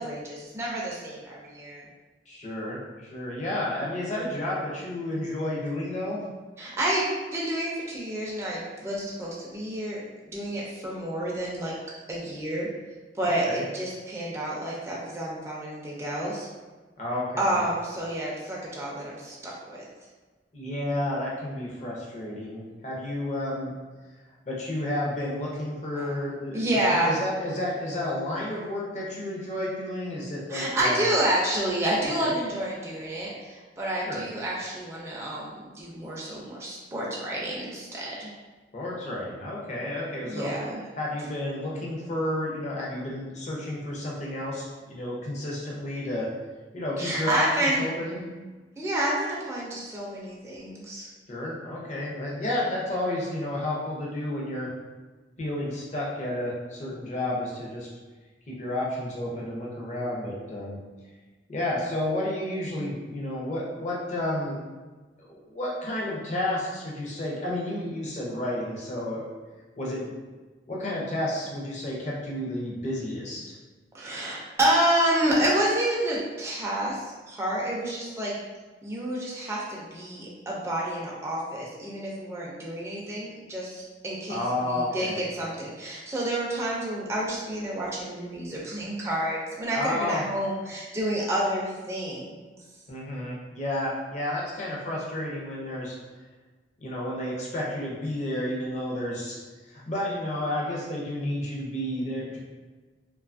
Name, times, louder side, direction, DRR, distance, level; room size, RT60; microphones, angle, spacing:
voice 1, 0.0-1.8 6.6-10.0 10.3-11.7 12.1-12.7 13.2-16.5 17.4-19.8 25.9-26.1 26.5-27.2 30.5-38.3 40.2-40.8 47.0-47.8 48.8-51.1 73.9-78.4 78.8-92.5, right 1 dB, 15° right, -5 dB, 0.4 m, -29 dB
voice 2, 2.3-6.2 13.2-13.6 17.0-17.6 20.5-23.7 24.5-26.6 26.9-31.0 32.2-32.4 34.0-34.2 38.7-40.5 41.0-46.3 46.7-48.2 51.3-54.7 55.4-57.9 58.6-60.8 61.5-64.6 65.2-69.2 69.8-70.1 70.7-73.5 84.3-85.2 89.7-90.2 92.9-96.0 96.8-99.4 99.7-102.4, left 1 dB, 40° left, -4 dB, 0.6 m, -31 dB
2.6 x 2.3 x 2.5 m, 1.3 s
head